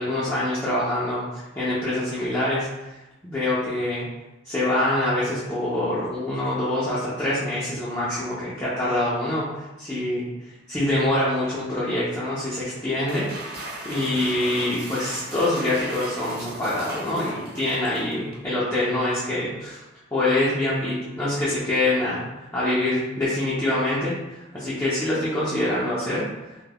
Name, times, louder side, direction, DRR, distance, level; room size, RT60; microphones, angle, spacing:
voice 1, 0.0-2.7 3.2-4.0 4.4-19.8 20.1-22.3 22.5-26.2, left 1 dB, 15° left, -10 dB, 0.4 m, -25 dB
sound 1, 12.9-18.5, right 1 dB, 50° right, 0.4 m, -37 dB
2.2 x 2.1 x 3.4 m, 1.0 s
head